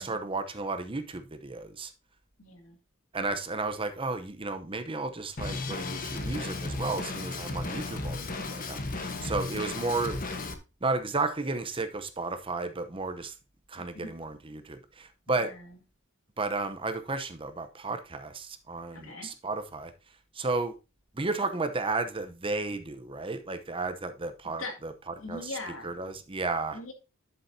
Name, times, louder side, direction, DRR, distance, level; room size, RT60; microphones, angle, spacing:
voice 1, 0.0-1.9 3.1-10.2 10.8-13.3 13.7-15.5 16.4-19.9 20.3-20.7 21.1-24.9 25.3-25.5 25.8-26.8, right 3 dB, 25° right, 0.8 m, -33 dB
voice 2, 2.4-2.8 13.8-14.1 15.3-15.8 18.9-19.3 24.6-24.7 25.2-25.9 26.7-26.9, left 2 dB, 80° left, 2.4 m, -42 dB
Drum kit, 5.4-10.5, left 3 dB, 45° left, 1.2 m, -34 dB
11.5 x 6.9 x 2.8 m
head